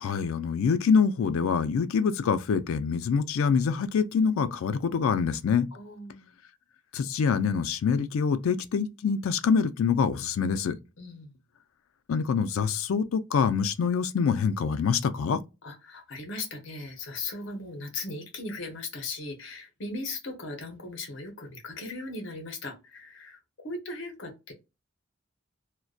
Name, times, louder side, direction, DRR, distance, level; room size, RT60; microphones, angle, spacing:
voice 1, 0.0-5.7 6.9-10.7 12.1-15.4, left 6 dB, 80° left, 0.3 m, -25 dB
voice 2, 5.7-6.3 11.0-11.3 15.6-24.5, left 2 dB, 60° left, 0.7 m, -38 dB
2.5 x 2.2 x 2.3 m
head